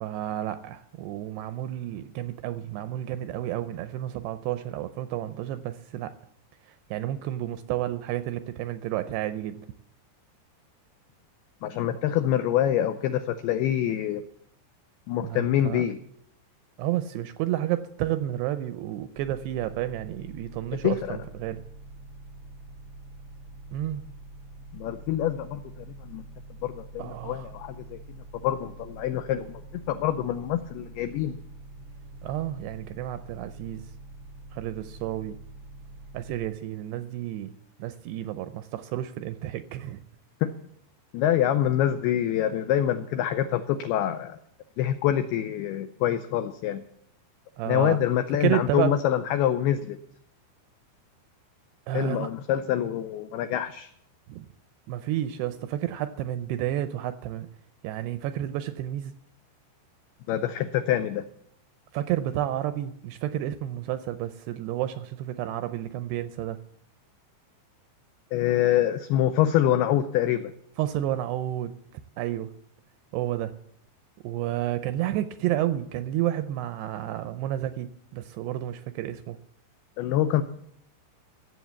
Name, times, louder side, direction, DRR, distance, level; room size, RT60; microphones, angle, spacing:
voice 1, 0.0-6.1 6.9-9.7 15.2-15.8 16.8-21.6 23.7-24.0 27.0-27.5 32.2-33.8 34.5-35.4 36.1-37.5 37.8-40.0 47.6-48.0 48.4-49.0 51.9-52.3 54.3-54.5 54.9-57.5 57.8-59.1 61.9-66.6 70.8-71.8 72.2-72.5 73.1-73.5 74.2-79.4, right 13 dB, 85° right, 11 dB, 2.4 m, -31 dB
voice 2, 11.6-14.2 15.1-16.0 20.8-21.2 24.7-26.2 26.6-28.0 28.4-31.4 40.4-40.5 41.1-44.4 44.8-46.8 47.6-50.0 51.9-53.9 60.3-61.2 68.3-70.5 80.0-80.4, left 11 dB, 90° left, 10 dB, 2.2 m, -26 dB
sound 1, 19.1-36.5, right 2 dB, 65° right, 1.4 m, -45 dB
15.5 x 7.9 x 7.1 m, 0.73 s
omnidirectional pair, 5.3 m